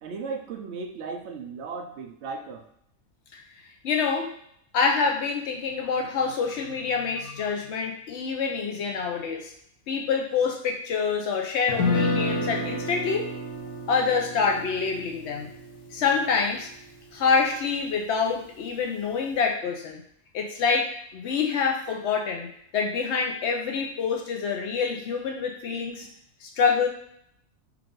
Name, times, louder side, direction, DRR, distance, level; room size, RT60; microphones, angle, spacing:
voice 1, 0.0-2.7, right 4 dB, 65° right, 5 dB, 0.8 m, -36 dB
voice 2, 3.8-4.3 4.7-9.5 9.9-13.2 13.9-15.5 15.9-16.7 17.1-20.0 20.3-26.1 26.4-26.9, left 5 dB, 60° left, 2 dB, 0.9 m, -26 dB
Guitar, 11.7-17.8, left 2 dB, 85° left, 1.2 m, -31 dB
4.6 x 2.5 x 3.7 m, 0.70 s
omnidirectional pair, 1.4 m